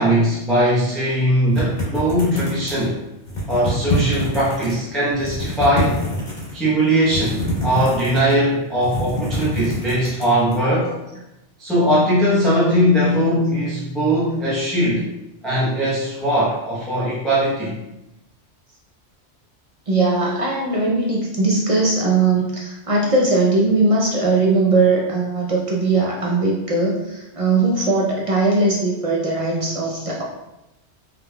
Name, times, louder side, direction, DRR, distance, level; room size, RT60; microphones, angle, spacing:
voice 1, 0.0-3.0 3.5-6.0 6.5-10.9 11.6-15.0 15.4-17.8, equal, ahead, -8 dB, 0.6 m, -20 dB
sound 1, 1.5-2.9 3.3-4.7 5.1-6.5 7.0-8.4 8.7-10.6, left 1 dB, 40° left, 1.6 m, -25 dB
voice 2, 19.9-30.2, right 3 dB, 50° right, -3 dB, 0.4 m, -19 dB
3.5 x 3.2 x 2.2 m, 0.93 s
omnidirectional pair, 1.2 m